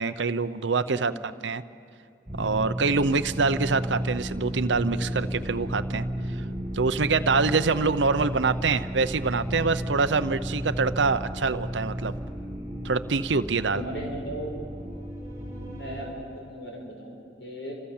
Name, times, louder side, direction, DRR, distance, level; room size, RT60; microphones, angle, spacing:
voice 1, 0.0-1.1 1.4-1.6 2.4-6.0 6.7-12.1 12.8-13.8, right 4 dB, 85° right, 11 dB, 0.7 m, -25 dB
voice 2, 0.8-1.5 13.6-14.5 15.5-17.7, right 1 dB, 85° left, 1 dB, 6.4 m, -37 dB
sound 1, 2.3-16.0, equal, 15° right, 7.8 m, -33 dB
29.5 x 26.0 x 7.3 m, 2.5 s
head